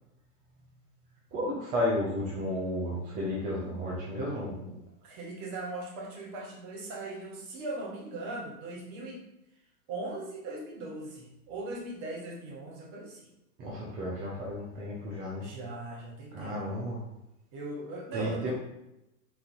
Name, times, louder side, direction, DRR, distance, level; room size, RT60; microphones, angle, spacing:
voice 1, 1.3-4.7 13.6-15.5 16.3-17.0 18.1-18.5, left 1 dB, 20° right, -6 dB, 0.5 m, -33 dB
voice 2, 5.0-9.2 9.9-13.2 15.4-16.6 17.5-18.5, right 2 dB, 35° right, -1 dB, 0.9 m, -39 dB
4.0 x 2.6 x 2.5 m, 0.90 s
hypercardioid pair, 105°, 48 cm